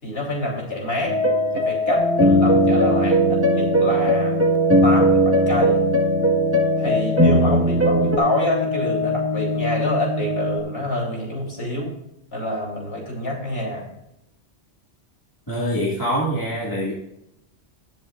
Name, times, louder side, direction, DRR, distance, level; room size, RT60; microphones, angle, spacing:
voice 1, 0.0-1.2 1.5-4.4 4.8-5.8 6.8-11.9 12.3-13.9, left 1 dB, 65° left, -2 dB, 3.8 m, -26 dB
sound 1, 1.1-8.2, right 1 dB, 15° right, 1.5 m, -19 dB
sound 2, 1.9-10.6, left 2 dB, 60° right, 3.0 m, -26 dB
voice 2, 15.5-16.9, equal, 20° left, -5 dB, 2.1 m, -24 dB
19.5 x 7.5 x 2.5 m, 0.83 s
omnidirectional pair, 1.1 m